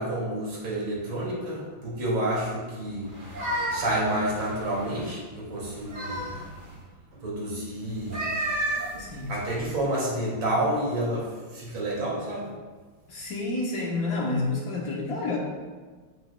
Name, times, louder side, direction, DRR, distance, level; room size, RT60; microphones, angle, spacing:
voice 1, 0.0-3.1 3.5-6.2 7.1-8.2 9.3-12.5, right 1 dB, 80° right, -5 dB, 3.2 m, -29 dB
sound 1, 3.1-5.1 5.6-6.8 7.9-9.8, right 1 dB, 25° right, 2.1 m, -33 dB
voice 2, 9.0-9.3 13.1-15.4, left 3 dB, 55° left, -2 dB, 1.4 m, -29 dB
9.4 x 9.2 x 2.3 m, 1.4 s
omnidirectional pair, 2.2 m